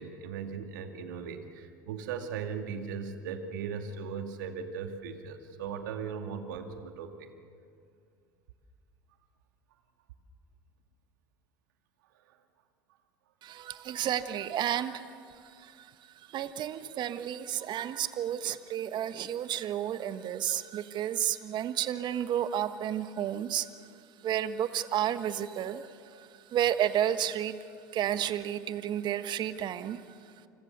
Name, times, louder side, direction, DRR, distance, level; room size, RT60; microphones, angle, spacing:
voice 1, 0.0-7.3, right 6 dB, 75° right, 6 dB, 2.2 m, -38 dB
voice 2, 13.4-15.1 15.4-15.9 16.3-23.7 24.2-27.6 27.9-30.0, right 10 dB, 45° right, 11 dB, 1.4 m, -31 dB
29.0 x 26.0 x 6.8 m, 2.3 s
hypercardioid pair, 75°, 10 cm